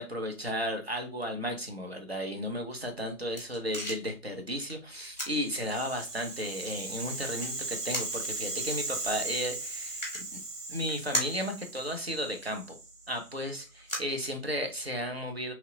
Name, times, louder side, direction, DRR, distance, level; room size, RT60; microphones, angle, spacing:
voice 1, 0.0-10.0 10.3-10.4 10.7-12.8 13.1-15.5, equal, 45° right, 4 dB, 0.4 m, -34 dB
sound 1, 2.8-14.9, equal, 30° left, 0.7 m, -41 dB
Rattle (instrument), 5.4-13.6, right 2 dB, 85° right, 0.9 m, -38 dB
2.8 x 2.0 x 2.6 m, 0.30 s
figure-of-eight pair, 165°, 46 cm